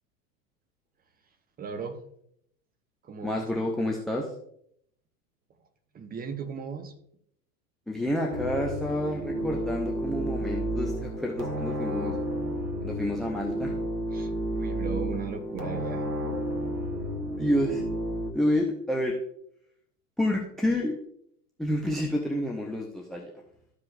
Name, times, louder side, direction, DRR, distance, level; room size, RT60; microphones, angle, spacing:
voice 1, 1.6-2.0 3.0-3.5 5.9-6.9 14.1-16.1, right 6 dB, 20° right, 5 dB, 1.0 m, -37 dB
voice 2, 3.2-4.3 7.9-12.2 12.8-13.7 17.4-17.8 18.3-19.2 20.2-21.0 21.6-23.3, left 1 dB, ahead, -1 dB, 0.5 m, -29 dB
sound 1, 8.3-18.3, right 1 dB, 90° right, 1.1 m, -31 dB
13.5 x 5.0 x 2.5 m, 0.70 s
figure-of-eight pair, 90°, 48 cm